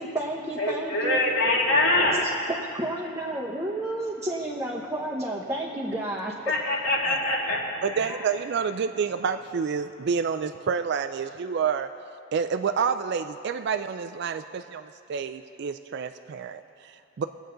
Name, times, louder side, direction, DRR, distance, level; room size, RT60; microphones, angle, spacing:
voice 1, 0.0-1.2 2.0-6.3 8.1-8.2, right 1 dB, 15° right, -3 dB, 0.9 m, -31 dB
voice 2, 0.6-2.2 6.5-7.7, left 2 dB, 75° left, -4 dB, 2.5 m, -24 dB
voice 3, 7.8-11.9 12.3-17.3, right 6 dB, 60° right, 9 dB, 0.4 m, -29 dB
22.5 x 8.0 x 3.9 m, 2.6 s
head